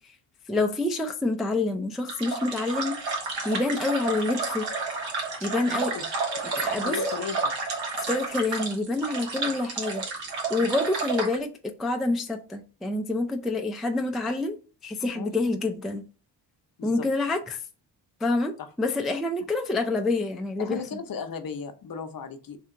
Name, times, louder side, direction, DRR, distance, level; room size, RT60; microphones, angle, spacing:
voice 1, 0.5-2.9 3.4-4.6 5.4-5.9 6.5-7.1 8.1-10.0 10.5-11.5 11.8-14.6 14.8-16.0 16.8-17.6 18.2-20.8, left 2 dB, ahead, 0.3 m, -27 dB
sound 1, 2.1-11.4, right 4 dB, 70° right, 1.2 m, -31 dB
voice 2, 5.7-6.0 6.8-7.4 8.1-8.2 9.4-9.5 10.6-10.7 15.1-15.3 16.8-17.1 18.6-18.7 20.6-22.6, left 6 dB, 50° left, 0.7 m, -36 dB
3.4 x 2.8 x 3.7 m
cardioid pair, 85°, 45 cm